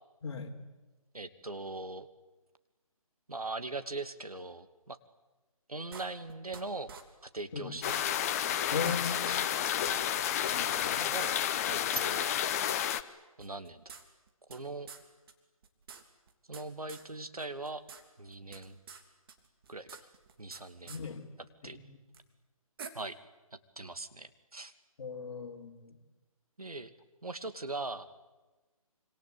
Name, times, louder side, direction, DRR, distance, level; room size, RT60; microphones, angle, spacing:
voice 1, 0.2-0.5 7.5-7.8 8.7-9.4 10.5-11.0 20.8-21.3 21.7-21.9 25.0-26.0, left 5 dB, 50° left, 3 dB, 4.1 m, -38 dB
voice 2, 1.1-2.1 3.3-5.0 5.7-6.9 7.2-8.1 9.1-9.4 10.4-10.5 11.0-11.3 11.7-12.3 13.4-13.9 14.5-14.9 16.5-17.8 18.2-18.8 19.7-19.9 20.4-20.9 21.6-21.8 22.9-23.2 23.8-24.7 26.6-26.9 27.2-28.1, right 2 dB, 90° right, 10 dB, 2.4 m, -40 dB
sound 1, 5.9-6.6 6.9-7.0 7.4-7.5 7.8-8.6 8.8-9.0 9.4-9.5 9.8-10.6 10.8-10.9 11.3-11.4 12.2-12.3 13.4-14.6 14.9-15.0 15.3-15.4 15.6-16.6 16.9-17.0 17.4-18.0 18.3-19.0 19.3-20.6 20.9-21.0 22.1-22.2 22.8-22.9, right 6 dB, 40° right, 3.3 m, -47 dB
sound 2, 7.8-13.0, left 10 dB, 25° left, 1.0 m, -31 dB
26.5 x 26.0 x 8.5 m, 1.1 s
figure-of-eight pair, 150°, 18 cm